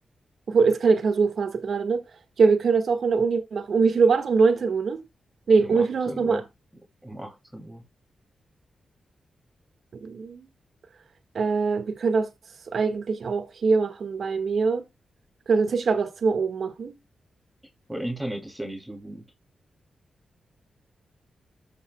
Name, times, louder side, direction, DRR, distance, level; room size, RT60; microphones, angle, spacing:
voice 1, 0.5-2.0 2.4-5.0 5.5-6.4 10.0-10.5 11.3-12.3 12.7-14.8 15.5-16.9, right 4 dB, 65° right, 1.5 m, -22 dB
voice 2, 5.6-6.5 7.0-7.8 17.9-19.2, right 1 dB, 5° right, 2.6 m, -35 dB
14.0 x 5.4 x 2.2 m
supercardioid pair, 45°, 0 cm